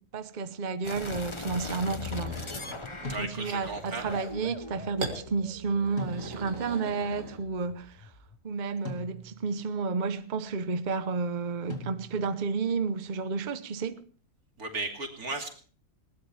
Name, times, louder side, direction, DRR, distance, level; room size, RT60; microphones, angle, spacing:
voice 1, 0.0-2.4 3.0-8.1 8.4-14.0, right 4 dB, 35° right, 0.9 m, -31 dB
sound 1, 0.8-8.3, left 4 dB, 20° left, 1.0 m, -41 dB
sound 2, 2.1-3.2 5.0-5.2 5.8-7.7, right 3 dB, 60° right, 2.3 m, -40 dB
sound 3, 3.0-3.8 6.0-6.7 8.8-9.6 11.7-12.5, left 2 dB, 60° left, 3.1 m, -41 dB
voice 2, 3.1-4.0 14.6-15.5, right 3 dB, 85° right, 3.2 m, -35 dB
20.5 x 18.5 x 3.3 m
omnidirectional pair, 1.5 m